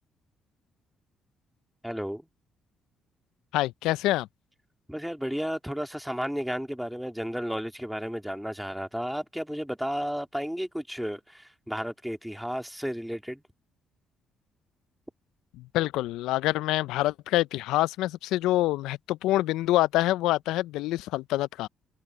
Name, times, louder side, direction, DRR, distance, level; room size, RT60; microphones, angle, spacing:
voice 1, 1.8-2.2 4.9-13.4, equal, ahead, 2.5 m, -33 dB
voice 2, 3.5-4.3 15.6-21.7, left 16 dB, 90° left, 0.4 m, -26 dB
cardioid pair, 85°, 0 cm